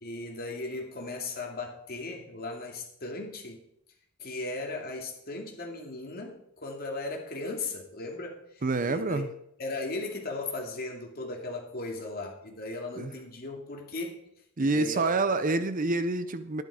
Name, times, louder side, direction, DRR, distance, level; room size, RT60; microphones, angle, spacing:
voice 1, 0.0-3.7 4.2-9.2 9.6-14.2 14.6-15.1 15.5-15.6, left 2 dB, 45° left, 1 dB, 2.6 m, -37 dB
voice 2, 8.6-9.3 13.0-13.1 14.6-16.6, right 3 dB, 40° right, 12 dB, 0.7 m, -27 dB
12.0 x 10.5 x 4.9 m, 0.76 s
head